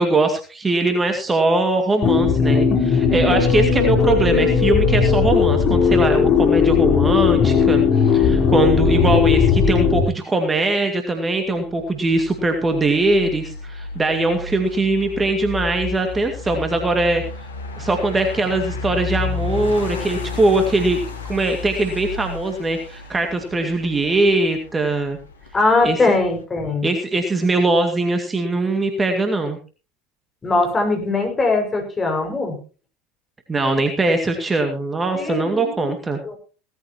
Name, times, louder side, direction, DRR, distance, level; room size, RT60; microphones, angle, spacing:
voice 1, 0.0-17.2 17.8-21.0 21.2-25.2 25.8-26.0 26.8-29.6 33.5-36.2, right 2 dB, 20° right, 5 dB, 2.2 m, -21 dB
sound 1, 2.0-10.0, left 6 dB, 45° left, 3.9 m, -17 dB
sound 2, 11.6-26.4, left 4 dB, 85° left, 2.0 m, -32 dB
voice 2, 25.5-26.9 30.4-32.6 35.1-35.9 36.2-36.4, left 3 dB, 25° left, 3 dB, 5.9 m, -20 dB
17.5 x 14.0 x 3.0 m, 0.35 s
hypercardioid pair, 75°, 0 cm